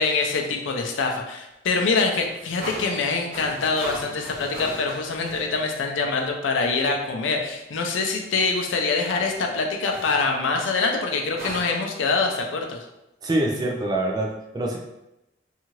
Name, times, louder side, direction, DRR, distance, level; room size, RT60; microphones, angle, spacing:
voice 1, 0.0-12.8, left 4 dB, 85° left, 2 dB, 0.5 m, -24 dB
sound 1, 2.3-6.2 6.7-6.9 9.1-9.6 9.9-10.3 11.3-11.8, right 1 dB, 50° right, 0.8 m, -39 dB
voice 2, 13.2-14.8, right 1 dB, 20° right, 0 dB, 0.3 m, -25 dB
2.7 x 2.4 x 3.0 m, 0.92 s
head